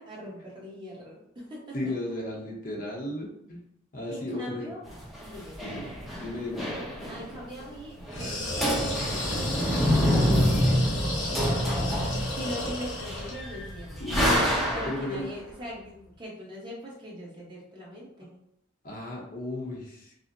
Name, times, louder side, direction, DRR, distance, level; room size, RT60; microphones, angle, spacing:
voice 1, 0.0-1.8 4.1-4.8 5.2-5.6 7.1-14.3 14.7-18.4, equal, 25° right, -5 dB, 1.0 m, -42 dB
voice 2, 1.7-3.6 3.9-4.7 5.6-5.9 6.2-6.7 14.0-15.3 18.2-18.3 18.8-20.2, left 1 dB, 45° left, -1 dB, 0.7 m, -35 dB
sound 1, 4.9-7.4 7.6-7.7 8.0-8.3 8.6-15.2, equal, ahead, 0.7 m, -27 dB
sound 2, 8.1-13.4, left 1 dB, 85° left, 1.1 m, -33 dB
4.8 x 2.1 x 2.6 m, 0.77 s
head